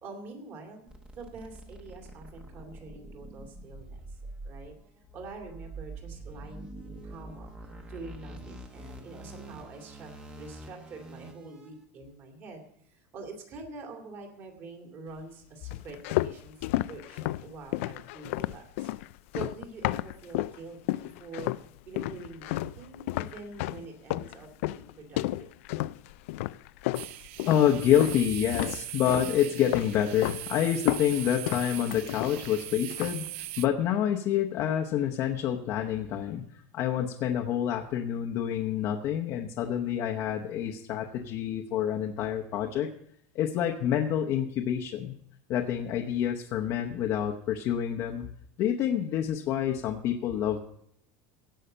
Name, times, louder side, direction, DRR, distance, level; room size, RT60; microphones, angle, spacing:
voice 1, 0.0-4.2 4.4-4.7 5.1-7.5 7.8-10.1 10.4-18.9 19.3-21.5 21.9-25.5, right 3 dB, 35° right, 2 dB, 2.5 m, -45 dB
sound 1, 0.9-11.7, right 2 dB, 15° right, 1.0 m, -45 dB
sound 2, 15.7-20.6 20.9-21.7 22.0-28.2 28.5-29.3 29.7-30.4 30.7-32.6 32.9-33.3, left 17 dB, 75° left, 0.4 m, -32 dB
sound 3, 26.9-33.7, right 16 dB, 75° right, 0.5 m, -40 dB
voice 2, 27.5-33.2 33.6-36.4 36.7-42.9 43.3-45.1 45.5-48.3 48.6-50.6, left 10 dB, 40° left, 1 dB, 0.8 m, -27 dB
17.0 x 5.7 x 6.7 m, 0.70 s
cardioid pair, 170°, 7 cm